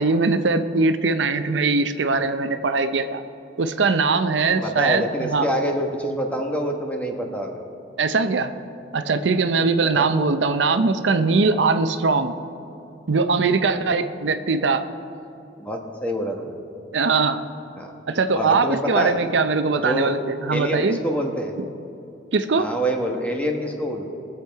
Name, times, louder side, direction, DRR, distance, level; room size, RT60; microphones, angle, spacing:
voice 1, 0.0-3.2 3.6-5.5 8.0-8.5 8.9-12.3 13.1-14.8 16.9-17.4 18.1-21.0 22.3-22.7, right 4 dB, 80° right, 9 dB, 0.6 m, -21 dB
voice 2, 4.6-7.6 9.9-10.1 11.5-11.7 15.6-16.5 17.8-17.9 18.3-19.1 19.8-20.1 20.5-21.5 22.6-24.1, equal, 5° left, 2 dB, 1.2 m, -26 dB
21.5 x 7.2 x 4.6 m, 2.7 s
head